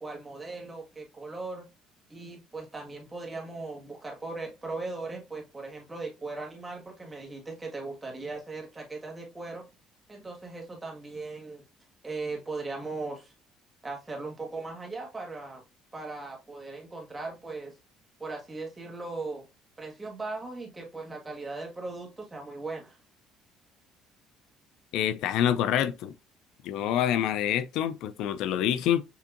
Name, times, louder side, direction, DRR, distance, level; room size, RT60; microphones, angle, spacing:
voice 1, 0.0-1.7 2.1-9.6 10.1-11.6 12.0-13.3 13.8-15.6 15.9-17.8 18.2-19.4 19.8-23.0, right 3 dB, 10° right, 1.6 m, -38 dB
voice 2, 24.9-26.1 26.6-29.0, left 10 dB, 65° left, 0.4 m, -26 dB
6.9 x 2.6 x 2.5 m
cardioid pair, 165°, 0 cm